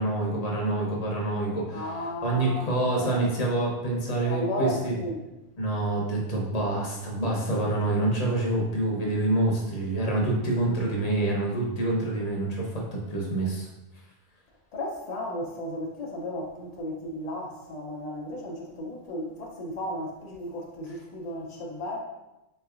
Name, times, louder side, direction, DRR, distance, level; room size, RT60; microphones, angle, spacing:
voice 1, 0.0-1.9 2.2-4.9 5.6-13.7, right 2 dB, 40° left, -2 dB, 0.6 m, -27 dB
voice 2, 1.7-3.2 4.2-5.2 14.7-22.0, equal, 90° left, -1 dB, 0.3 m, -34 dB
3.7 x 3.2 x 2.3 m, 0.96 s
omnidirectional pair, 1.4 m